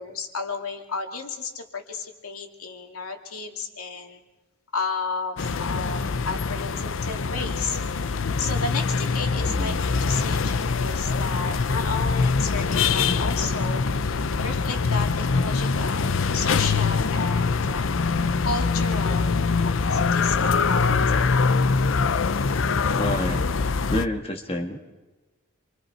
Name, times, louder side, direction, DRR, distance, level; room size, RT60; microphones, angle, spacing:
voice 1, 0.0-4.2 4.7-7.8 8.4-17.9 18.4-19.3 19.6-21.3, left 4 dB, 85° left, 3 dB, 2.4 m, -33 dB
sound 1, 5.4-24.1, left 4 dB, 60° left, 0.6 m, -24 dB
voice 2, 9.4-9.8 23.0-23.4 23.9-24.8, left 1 dB, 25° left, 3 dB, 1.6 m, -28 dB
27.5 x 24.0 x 4.4 m, 1.1 s
head